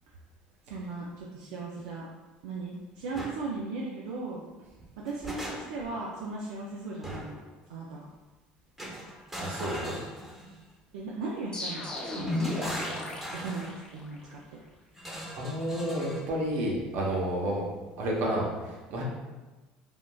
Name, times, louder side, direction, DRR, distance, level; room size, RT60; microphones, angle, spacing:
voice 1, 0.7-2.1 2.4-4.4 5.0-7.3 7.7-8.0 10.9-12.4 13.3-14.6, right 3 dB, 90° right, -3 dB, 0.4 m, -37 dB
sound 1, 3.1-3.4 4.8-5.9 7.0-7.5 8.8-10.6 11.9-13.7 15.0-16.3, right 1 dB, 10° right, 0.8 m, -40 dB
voice 2, 9.4-10.0 15.3-17.6 18.0-19.0, right 1 dB, 65° right, -3 dB, 0.8 m, -30 dB
sound 2, 11.5-14.3, left 2 dB, 25° left, 0.7 m, -34 dB
3.4 x 2.5 x 2.2 m, 1.2 s
supercardioid pair, 100°, 3 cm